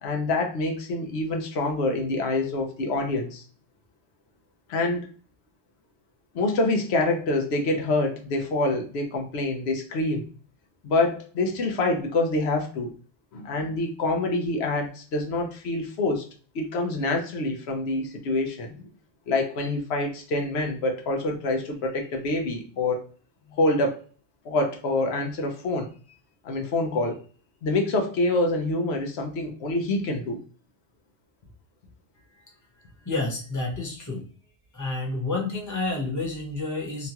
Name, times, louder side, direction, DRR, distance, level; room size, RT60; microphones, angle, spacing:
voice 1, 0.0-3.4 4.7-5.0 6.3-10.3 10.8-12.9 13.3-16.3 16.5-18.9 19.3-23.0 23.5-24.0 24.4-25.9 26.4-27.2 27.6-30.4, left 2 dB, 85° left, 3 dB, 0.9 m, -26 dB
voice 2, 33.0-34.2 34.7-37.1, left 2 dB, 20° left, -1 dB, 0.8 m, -29 dB
2.9 x 2.2 x 2.8 m, 0.41 s
omnidirectional pair, 1.1 m